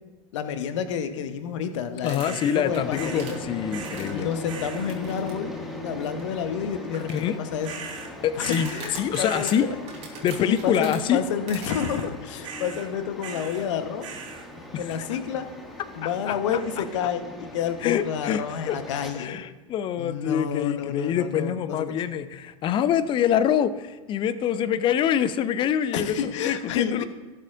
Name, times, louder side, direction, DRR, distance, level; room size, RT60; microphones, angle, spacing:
voice 1, 0.3-3.4 4.1-5.5 5.8-7.7 8.4-9.8 10.4-14.1 14.8-15.5 16.0-19.4 20.0-22.0 25.9-27.0, left 8 dB, 55° left, 9 dB, 1.1 m, -29 dB
voice 2, 2.0-4.3 7.1-7.4 8.2-9.7 10.2-11.2 14.7-15.1 16.0-16.6 17.8-18.8 19.1-27.0, left 9 dB, 25° left, 15 dB, 0.5 m, -25 dB
sound 1, 2.0-4.3 4.9-5.3 5.6-5.7 6.2-6.3 6.9-7.7 8.4-11.0 11.5-11.7, right 5 dB, 35° right, 3.4 m, -42 dB
sound 2, 2.2-2.6 2.9-3.4 3.7-4.2 4.4-4.9 7.6-8.8 9.1-9.6 11.6-12.1 12.4-12.9 13.2-13.7 14.0-14.5 16.6-17.0, right 6 dB, 60° right, 1.4 m, -39 dB
sound 3, 2.6-19.1, left 2 dB, ahead, 2.0 m, -39 dB
18.0 x 7.3 x 2.5 m, 1.3 s
figure-of-eight pair, 85°, 19 cm